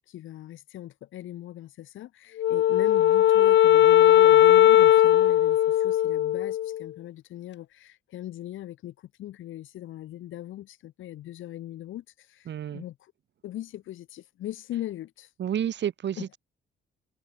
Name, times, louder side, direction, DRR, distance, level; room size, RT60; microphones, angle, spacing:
voice 1, 0.1-13.1 13.4-15.3 16.2-16.3, left 13 dB, 80° left, 3.7 m, -40 dB
Wind instrument woodwind instrument, 2.4-6.8, left 12 dB, 65° left, 0.9 m, -18 dB
voice 2, 12.5-12.8 15.4-16.4, right 9 dB, 65° right, 5.1 m, -30 dB
cardioid pair, 90°, 20 cm